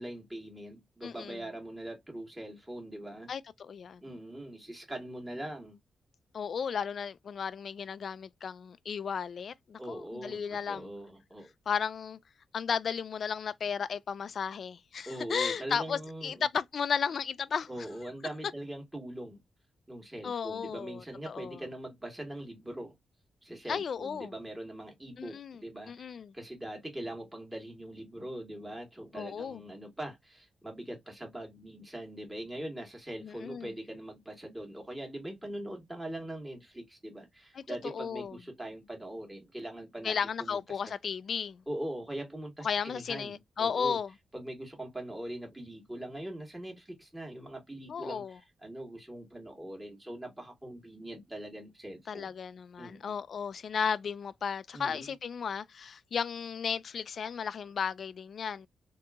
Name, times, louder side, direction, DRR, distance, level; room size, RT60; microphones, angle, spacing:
voice 1, 0.0-3.3 4.0-5.8 9.8-11.5 15.0-16.5 17.7-19.4 19.9-22.9 23.4-40.9 41.7-44.0 44.3-52.3 52.8-53.1 54.7-55.1, right 1 dB, 10° right, 1.4 m, -42 dB
voice 2, 1.0-1.4 3.3-4.0 6.3-10.9 11.7-12.2 12.5-17.7 20.2-21.6 23.7-24.3 25.2-25.6 25.9-26.3 29.1-29.6 33.2-33.7 37.5-38.4 40.0-41.6 42.6-44.1 47.9-48.4 52.1-58.7, left 6 dB, 60° left, 0.4 m, -34 dB
3.8 x 2.8 x 2.3 m
cardioid pair, 110°, 0 cm